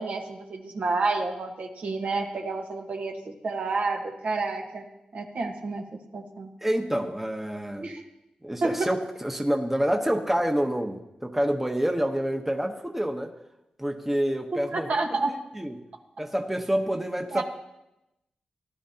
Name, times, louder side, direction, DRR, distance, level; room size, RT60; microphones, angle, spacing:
voice 1, 0.0-4.8 5.1-5.8 6.1-6.5 7.8-8.0 8.6-8.9 14.7-15.4 17.3-17.4, right 3 dB, 65° right, 2 dB, 1.4 m, -29 dB
voice 2, 6.6-7.9 8.4-13.3 13.8-15.0 15.5-15.8 16.2-17.4, equal, 10° right, 3 dB, 1.0 m, -27 dB
17.0 x 11.5 x 2.9 m, 0.91 s
cardioid pair, 80°, 3 cm